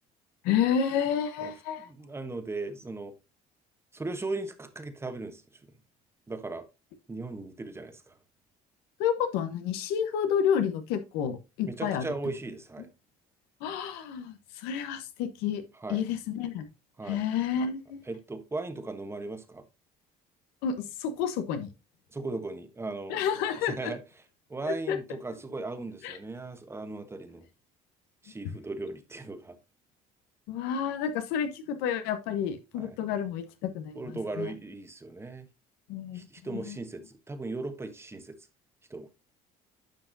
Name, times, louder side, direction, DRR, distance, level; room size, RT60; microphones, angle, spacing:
voice 1, 0.4-1.9 9.0-12.0 13.6-15.6 15.9-16.7 17.1-18.0 20.6-21.7 23.1-23.9 24.6-25.0 26.0-26.2 30.5-34.0 34.4-34.5 35.9-36.2 36.5-36.8, left 8 dB, 85° left, 1.1 m, -30 dB
voice 2, 1.9-3.1 3.9-5.4 6.3-6.6 7.1-8.2 11.7-12.9 15.8-16.0 17.0-17.2 18.1-19.6 22.1-23.2 23.6-24.0 24.5-27.4 28.2-29.6 32.8-33.0 33.9-35.5 36.1-38.4 38.9-39.1, right 3 dB, 15° right, 1.2 m, -37 dB
10.5 x 5.8 x 2.7 m
cardioid pair, 105°, 16 cm